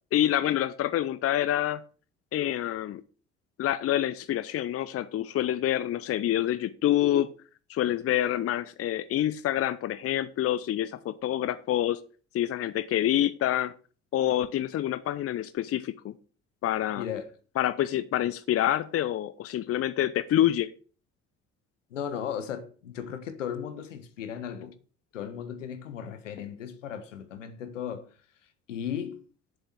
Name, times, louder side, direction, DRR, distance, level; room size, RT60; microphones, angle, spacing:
voice 1, 0.1-1.8 2.3-3.0 3.6-7.3 7.7-12.0 12.3-13.7 14.1-16.1 16.6-17.0 17.6-20.7, left 12 dB, 40° left, 0.7 m, -27 dB
voice 2, 17.0-17.3 21.9-24.7 25.1-28.1 28.7-29.2, left 8 dB, 75° left, 1.3 m, -36 dB
7.6 x 7.0 x 8.2 m
figure-of-eight pair, 50°, 37 cm